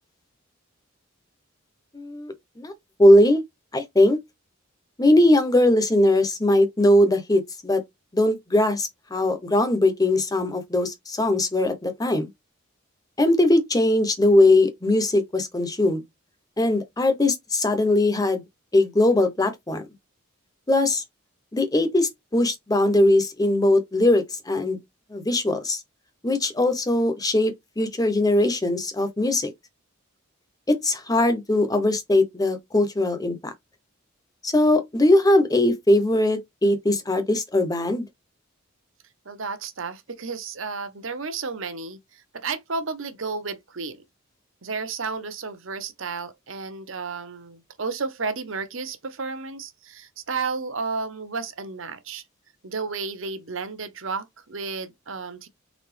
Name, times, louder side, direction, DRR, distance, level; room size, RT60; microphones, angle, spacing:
voice 1, 1.9-2.7 3.0-3.4 3.7-4.2 5.0-7.8 8.1-12.3 13.2-16.0 16.6-18.4 18.7-19.8 20.7-21.0 21.5-24.8 25.1-25.8 26.2-29.5 30.7-33.4 34.4-38.0, left 1 dB, 15° left, 0.9 m, -20 dB
voice 2, 39.2-44.0 44.6-52.2 52.6-55.5, right 4 dB, 65° right, 0.9 m, -32 dB
4.1 x 3.7 x 3.2 m
head